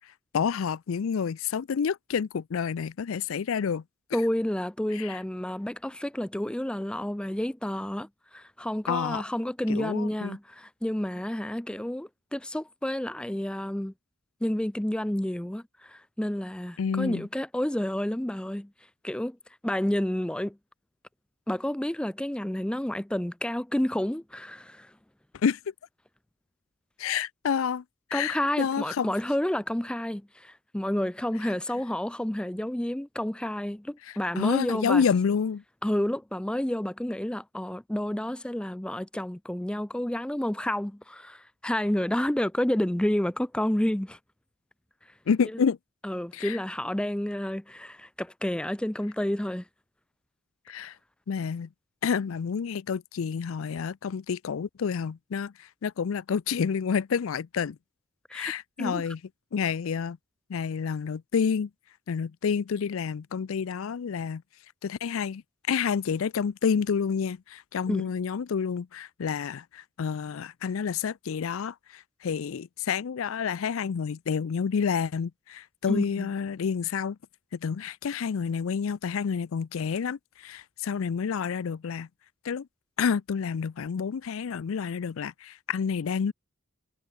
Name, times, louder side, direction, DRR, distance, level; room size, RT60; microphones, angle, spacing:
voice 1, 0.3-3.8 4.9-5.2 8.9-9.2 9.7-10.4 16.8-17.2 25.4-25.6 27.0-27.8 28.1-29.1 34.4-35.6 45.3-45.8 46.3-46.6 50.7-51.0 51.3-51.7 52.0-57.8 58.3-59.2 59.5-60.2 60.5-61.7 62.1-64.4 64.8-65.4 65.7-77.2 77.6-82.1 82.4-82.7 83.0-86.3, left 6 dB, 75° left, 0.4 m, -29 dB
voice 2, 4.1-13.9 14.4-18.7 19.0-19.4 19.6-20.6 21.5-24.9 28.1-35.0 35.8-44.2 45.5-45.6 46.0-49.6 58.3-58.5 58.8-59.0 67.9-68.1 75.9-76.3, left 1 dB, 5° left, 0.4 m, -30 dB
head